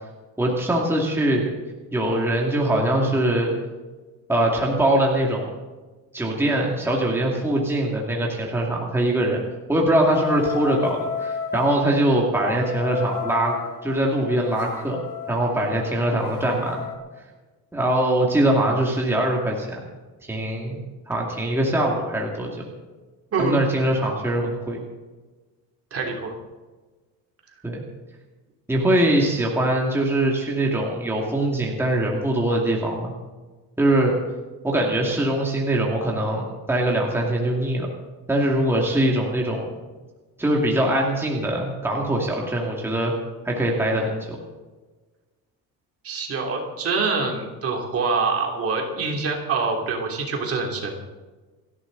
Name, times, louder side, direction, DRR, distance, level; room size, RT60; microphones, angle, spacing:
voice 1, 0.4-1.5 1.9-3.5 4.3-5.6 6.1-9.4 9.7-13.6 13.8-15.0 15.3-16.9 17.7-19.8 20.3-20.8 21.1-22.5 23.4-24.8 27.6-27.8 28.7-33.1 33.8-34.1 34.6-37.9 38.3-39.7 40.4-43.1 43.4-44.4, right 1 dB, 5° right, -2 dB, 2.4 m, -22 dB
sound 1, 10.1-11.8 12.5-17.0, left 7 dB, 55° left, 3.8 m, -33 dB
voice 2, 25.9-26.4 46.0-51.1, right 4 dB, 40° right, 1 dB, 3.0 m, -25 dB
29.5 x 11.0 x 4.0 m, 1.3 s
cardioid pair, 170°, 37 cm